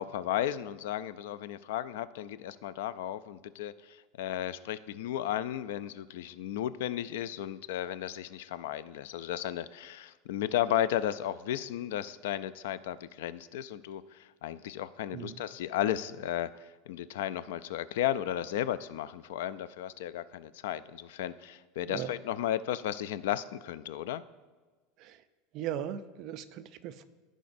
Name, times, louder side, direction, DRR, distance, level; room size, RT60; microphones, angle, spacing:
voice 1, 0.0-16.5 16.9-24.2, left 11 dB, 80° left, 16 dB, 0.3 m, -34 dB
voice 2, 25.5-27.1, right 10 dB, 40° right, 11 dB, 0.4 m, -38 dB
14.5 x 5.1 x 2.6 m, 1.4 s
supercardioid pair, 165°, 0 cm